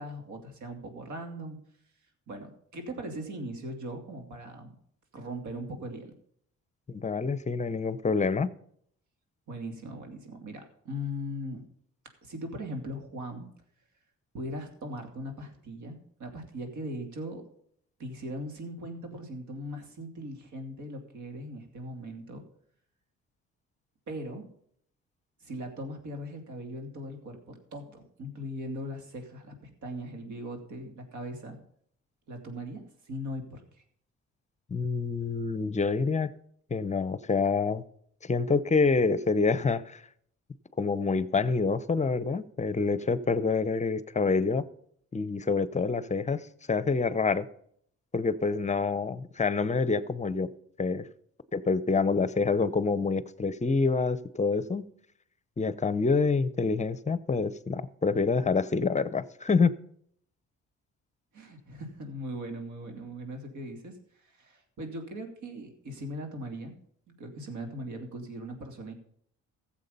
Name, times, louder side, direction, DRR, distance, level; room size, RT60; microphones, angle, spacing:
voice 1, 0.0-1.6 2.3-4.7 5.1-6.1 9.5-11.6 12.2-13.5 14.3-17.5 18.0-22.4 24.1-24.4 25.4-31.6 32.3-33.8 61.3-66.7 67.2-68.9, equal, 70° right, 2.9 m, -39 dB
voice 2, 6.9-8.5 34.7-36.3 36.7-37.8 38.2-40.0 40.8-44.6 45.1-47.5 48.1-50.5 50.8-51.1 51.5-54.9 55.6-59.7, left 4 dB, 25° left, 0.7 m, -27 dB
15.0 x 7.5 x 5.4 m
cardioid pair, 90°, 30 cm